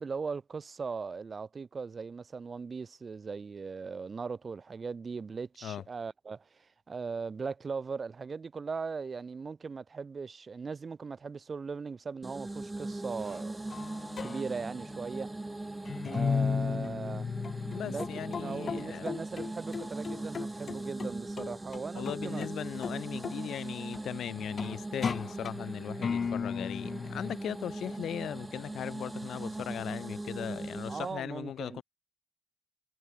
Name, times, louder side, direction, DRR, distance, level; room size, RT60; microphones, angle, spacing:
voice 1, 0.0-13.5 14.2-15.3 16.1-17.3 17.8-18.1 18.4-22.5 30.9-31.8, right 5 dB, 45° right, 1.0 m, -39 dB
sound 1, 12.2-31.1, right 2 dB, 20° right, 1.0 m, -40 dB
sound 2, 13.1-13.4 13.7-15.2 15.9-21.1 21.4-22.5 22.8-23.0 23.2-23.4 23.9-24.0 24.6-25.7 26.0-27.4, left 6 dB, 50° left, 1.1 m, -35 dB
voice 2, 17.7-19.1 21.9-31.8, left 10 dB, 70° left, 0.6 m, -38 dB
hypercardioid pair, 50°, 0 cm